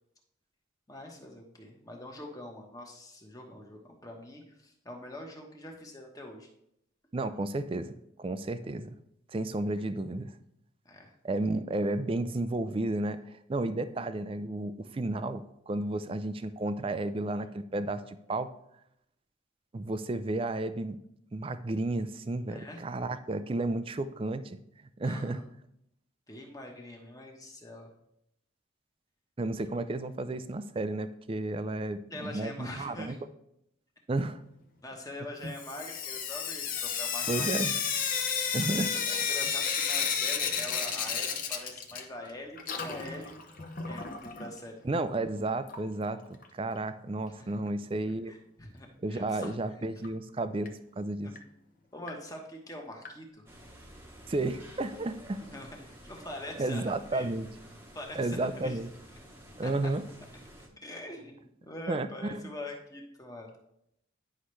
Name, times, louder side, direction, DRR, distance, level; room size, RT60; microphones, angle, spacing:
voice 1, 0.9-6.5 9.7-9.8 10.8-11.1 22.5-22.8 25.0-25.5 26.3-27.9 32.1-33.2 34.8-37.8 38.4-43.3 43.8-44.8 47.3-47.6 48.3-49.6 51.2-51.3 51.9-53.4 55.4-56.8 57.1-57.3 57.9-58.8 59.6-59.9 60.8-63.6, left 1 dB, 15° left, 1 dB, 1.1 m, -44 dB
voice 2, 7.1-8.9 9.3-10.3 11.2-13.2 13.5-18.5 19.7-21.0 21.3-24.6 25.0-25.4 29.4-33.1 34.1-34.4 35.4-35.5 37.3-37.7 38.5-38.9 44.8-48.3 49.0-51.3 54.3-55.4 56.6-57.5 58.2-58.9 59.6-60.0 61.9-62.5, right 2 dB, 25° right, 11 dB, 0.4 m, -32 dB
Sink (filling or washing) / Drip, 35.5-42.3 42.6-44.5 45.7-45.8 46.1-46.2 46.4-46.5 49.4-49.5 50.0-50.1 50.7-50.8 51.4-51.5 52.1-52.2 53.0-53.1, left 7 dB, 40° left, 0.7 m, -32 dB
sound 1, 53.5-60.7, equal, 10° right, 0.9 m, -51 dB
10.0 x 5.6 x 3.2 m, 0.77 s
head